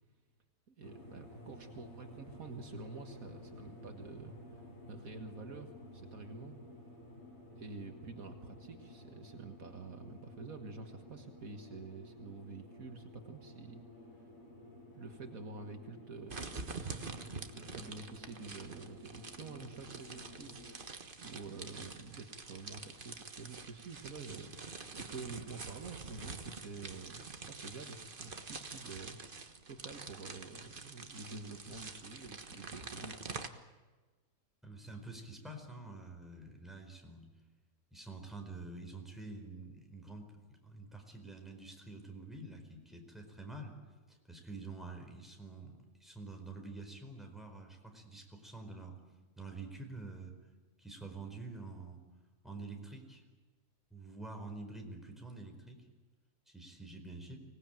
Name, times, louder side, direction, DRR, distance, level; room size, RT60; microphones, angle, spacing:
voice 1, 0.7-6.6 7.6-13.8 14.9-16.5 17.5-20.6 21.2-24.5 24.9-29.2 29.7-33.2, right 4 dB, 65° right, 5 dB, 2.0 m, -48 dB
sound 1, 0.8-20.7, left 1 dB, 45° left, 5.0 m, -54 dB
sound 2, 16.3-33.5, right 4 dB, 35° right, 1.5 m, -46 dB
voice 2, 34.6-37.3 37.9-43.7 44.1-49.0 49.4-50.4 50.8-52.0 52.4-53.2 53.9-55.8 56.5-57.4, right 3 dB, ahead, 2 dB, 4.6 m, -47 dB
25.0 x 19.0 x 9.1 m, 1.3 s
omnidirectional pair, 1.6 m